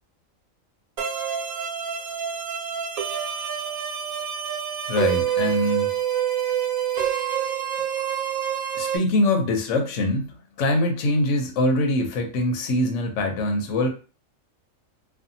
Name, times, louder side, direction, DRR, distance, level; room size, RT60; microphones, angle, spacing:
sound 1, 1.0-9.0, right 9 dB, 75° right, 1.1 m, -27 dB
voice 1, 4.9-6.0 8.7-13.9, left 1 dB, 70° left, 3 dB, 1.0 m, -23 dB
2.6 x 2.4 x 2.6 m, 0.35 s
omnidirectional pair, 1.4 m